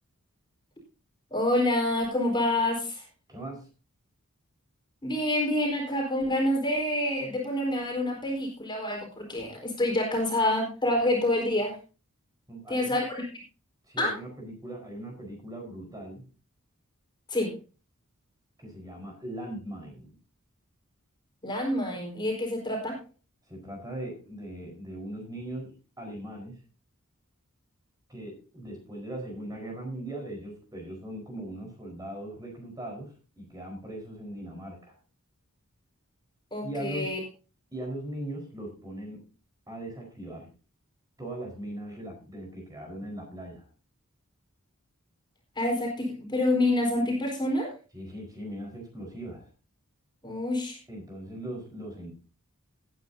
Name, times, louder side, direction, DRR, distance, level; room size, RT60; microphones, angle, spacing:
voice 1, 1.3-3.0 5.0-11.8 12.7-13.3 14.0-14.1 17.3-17.5 21.4-23.0 36.5-37.2 45.6-47.7 50.2-50.8, left 1 dB, 20° left, 0 dB, 4.6 m, -27 dB
voice 2, 3.3-3.7 12.5-13.0 13.9-16.2 18.6-20.2 23.5-26.6 28.1-35.0 36.6-37.1 37.7-39.2 39.7-40.5 41.2-43.7 47.9-49.5 50.9-52.1, right 1 dB, 15° right, 1 dB, 4.6 m, -39 dB
18.5 x 9.7 x 2.8 m, 0.33 s
head